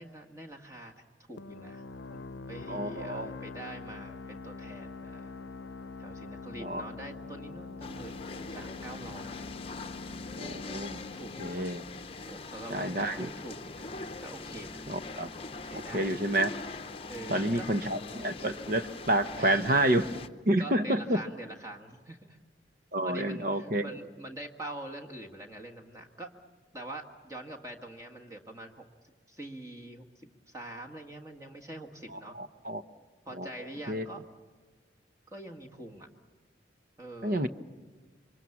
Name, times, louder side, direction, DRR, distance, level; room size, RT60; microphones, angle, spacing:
voice 1, 0.0-5.3 6.0-9.5 11.1-11.8 12.3-14.9 15.6-16.3 17.1-17.7 19.4-19.6 20.6-22.4 23.0-26.3 26.7-32.4 33.2-34.2 35.3-36.1 37.0-37.5, right 1 dB, 15° right, 2 dB, 1.6 m, -45 dB
sound 1, 1.4-12.8, left 3 dB, 80° left, 0.7 m, -44 dB
voice 2, 2.7-3.3 6.6-6.8 10.4-11.0 11.4-11.8 12.7-13.3 14.9-15.3 15.7-16.5 17.3-20.1 20.5-21.2 22.9-23.9 32.4-32.8 33.4-33.5 33.9-34.0 37.2-37.5, right 1 dB, 50° right, 10 dB, 0.9 m, -29 dB
sound 2, 7.8-20.3, left 3 dB, 30° left, 0.8 m, -42 dB
28.0 x 24.0 x 7.1 m, 1.4 s
head